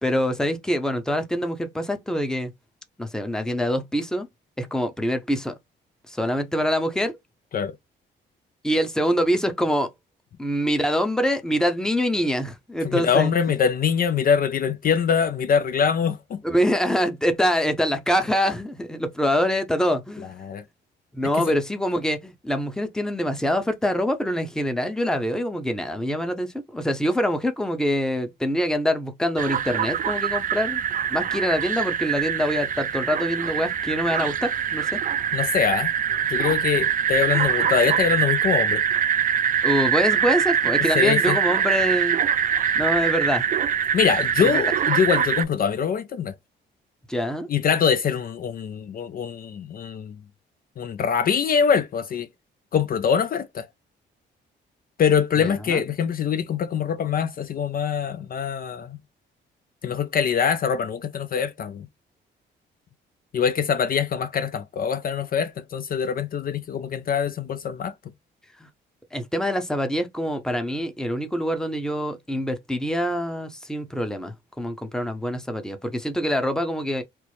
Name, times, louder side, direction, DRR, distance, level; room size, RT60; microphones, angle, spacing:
voice 1, 0.0-2.5 3.0-4.3 4.6-5.5 6.1-7.2 8.6-9.9 10.4-13.3 16.4-20.3 21.1-30.8 31.1-35.0 39.6-42.2 42.8-43.5 44.4-44.6 47.1-47.5 55.4-55.8 69.1-77.0, equal, 5° left, 0.7 m, -25 dB
voice 2, 12.8-16.4 20.2-20.6 21.2-21.5 35.3-35.9 36.3-38.8 40.9-41.4 43.9-46.3 47.5-50.1 50.8-52.3 52.7-53.7 55.0-59.0 59.8-61.9 63.3-67.9, left 7 dB, 45° left, 0.4 m, -23 dB
sound 1, 29.4-45.4, right 8 dB, 45° right, 0.4 m, -23 dB
4.4 x 2.0 x 3.1 m
cardioid pair, 90°, 20 cm